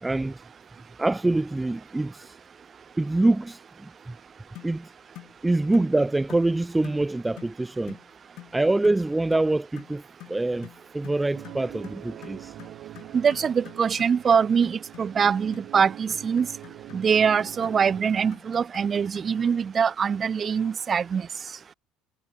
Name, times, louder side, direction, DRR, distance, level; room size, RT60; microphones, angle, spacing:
voice 1, 0.0-0.4 1.0-2.3 3.0-4.1 4.6-4.9 5.4-8.0 8.5-10.0 10.3-10.7 10.9-12.5, right 2 dB, 10° right, 0.7 m, -25 dB
sound 1, 4.5-4.8 5.1-5.4 5.7-5.9 6.3-6.5 6.8-7.0 7.4-7.6 7.9-8.1 8.4-8.6 8.8-9.0 9.3-9.5 9.8-19.4, left 17 dB, 65° left, 3.2 m, -47 dB
sound 2, 11.3-18.0, right 14 dB, 60° right, 3.9 m, -44 dB
voice 2, 13.1-16.5 16.9-21.3, right 6 dB, 35° right, 1.0 m, -23 dB
supercardioid pair, 100°, 0 cm